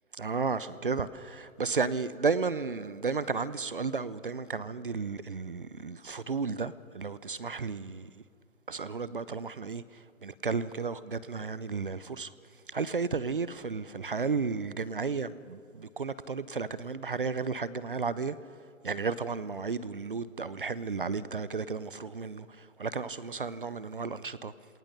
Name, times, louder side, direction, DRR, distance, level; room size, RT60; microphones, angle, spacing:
voice 1, 0.2-8.1 8.7-12.3 12.7-18.4 18.8-24.5, right 4 dB, 40° right, 0.6 m, -33 dB
27.0 x 18.5 x 6.6 m
hypercardioid pair, 165°, 41 cm